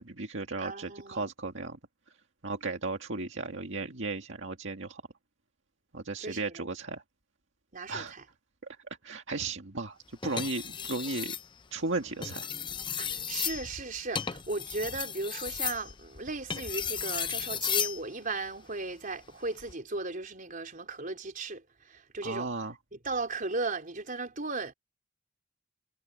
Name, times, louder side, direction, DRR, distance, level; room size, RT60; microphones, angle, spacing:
voice 1, 0.0-1.8 2.4-5.0 5.9-7.0 7.9-8.1 9.0-11.4 11.7-12.5 22.2-22.7, right 3 dB, 70° right, 2.0 m, -35 dB
voice 2, 0.6-1.3 6.2-6.7 7.7-8.2 13.0-22.7 22.9-24.7, right 3 dB, 45° right, 4.4 m, -36 dB
sound 1, 10.2-11.5 12.1-18.0 19.4-19.7, left 7 dB, 25° left, 0.6 m, -34 dB
head